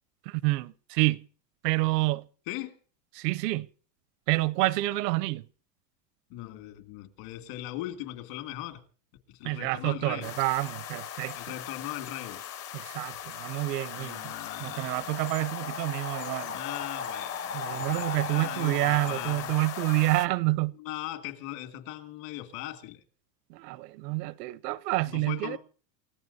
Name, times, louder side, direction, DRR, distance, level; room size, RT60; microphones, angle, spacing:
voice 1, 0.3-1.3 1.6-2.3 3.2-3.7 4.3-5.4 9.4-11.4 12.7-14.3 14.6-16.6 17.5-20.7 23.5-25.6, right 21 dB, 75° right, 0.7 m, -28 dB
voice 2, 6.3-8.8 9.3-10.3 11.3-12.4 14.0-15.2 16.5-19.6 20.8-23.0 25.0-25.6, left 14 dB, 60° left, 2.3 m, -39 dB
sound 1, 10.2-20.3, left 7 dB, 30° left, 0.7 m, -37 dB
29.0 x 15.0 x 2.7 m
supercardioid pair, 135°, 50 cm